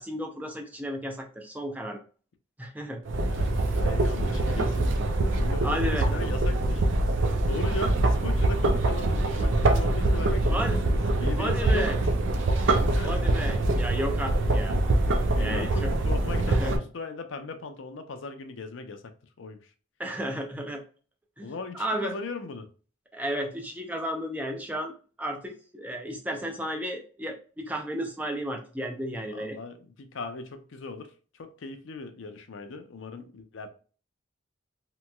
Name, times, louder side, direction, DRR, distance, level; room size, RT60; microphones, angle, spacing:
voice 1, 0.0-2.0 2.6-3.0 4.5-4.7 5.6-6.1 10.4-10.8 11.4-12.0 13.0-14.8 15.4-15.9 16.5-16.8 20.0-20.8 21.4-22.2 23.1-24.9 25.2-29.6, equal, 10° right, 0.4 m, -33 dB
sound 1, 3.1-16.8, right 2 dB, 75° right, 0.5 m, -24 dB
voice 2, 3.3-4.9 5.3-6.8 7.4-12.0 12.9-13.1 15.4-19.0 19.4-19.6 21.4-22.7 29.3-33.7, left 3 dB, 80° left, 0.5 m, -38 dB
3.0 x 2.9 x 2.2 m
head